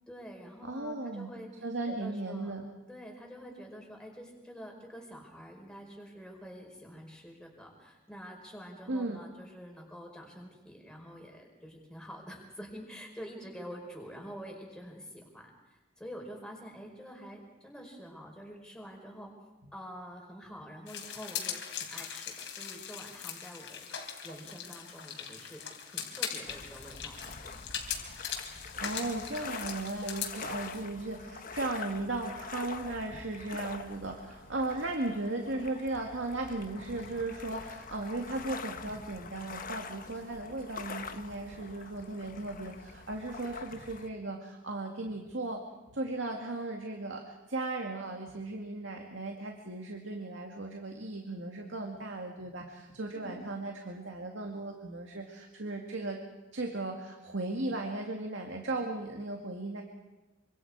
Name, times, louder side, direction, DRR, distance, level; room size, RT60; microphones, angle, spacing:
voice 1, 0.1-1.5 1.9-2.5 2.9-19.3 19.7-21.6 21.9-23.9 24.2-27.2 53.1-53.5, equal, 5° left, 0 dB, 4.7 m, -47 dB
voice 2, 0.6-1.3 1.6-2.7 8.9-9.2 28.8-45.6 45.9-56.2 56.5-59.8, right 2 dB, 70° right, 2 dB, 2.2 m, -36 dB
sound 1, 20.9-30.8, left 8 dB, 65° left, 3.6 m, -40 dB
sound 2, 26.5-44.1, left 4 dB, 45° left, 1.4 m, -45 dB
26.5 x 25.5 x 4.8 m, 1.1 s
head